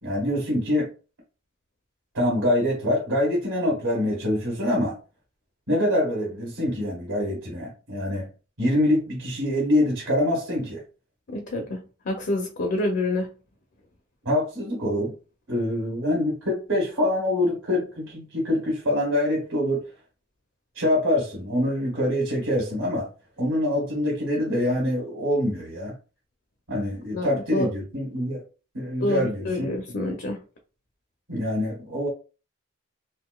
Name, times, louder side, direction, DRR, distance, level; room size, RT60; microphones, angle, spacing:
voice 1, 0.0-0.9 2.1-4.9 5.7-8.3 8.6-10.8 14.2-15.1 15.5-19.8 20.7-23.1 23.4-25.9 26.7-28.4 28.7-29.7 31.3-32.1, left 1 dB, 70° right, 1.5 m, -25 dB
voice 2, 11.3-11.8 12.1-13.3 27.1-27.7 29.0-30.4, left 2 dB, 50° left, 0.6 m, -27 dB
3.8 x 2.6 x 2.3 m
head